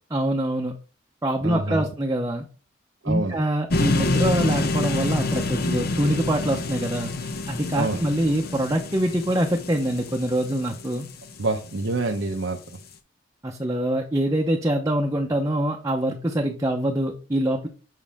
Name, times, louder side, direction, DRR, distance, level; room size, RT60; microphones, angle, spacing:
voice 1, 0.1-0.7 1.2-2.5 3.1-11.1 13.4-17.7, right 1 dB, 20° right, 1 dB, 0.8 m, -24 dB
voice 2, 1.4-1.9 3.0-3.4 7.7-8.0 11.4-12.6, right 2 dB, 90° right, 2 dB, 0.8 m, -26 dB
sound 1, 3.7-11.8, left 2 dB, 55° left, 0.8 m, -27 dB
7.3 x 5.6 x 3.5 m, 0.35 s
head